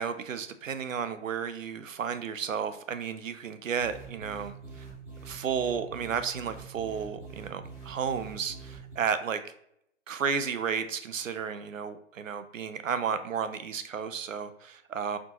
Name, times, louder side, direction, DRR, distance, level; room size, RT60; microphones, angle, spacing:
voice 1, 0.0-4.8 5.2-9.4 10.1-15.2, right 7 dB, 85° right, 11 dB, 0.5 m, -33 dB
sound 1, 3.8-8.9, right 4 dB, 5° right, 0.7 m, -45 dB
4.1 x 2.9 x 2.9 m, 0.75 s
figure-of-eight pair, 140°, 38 cm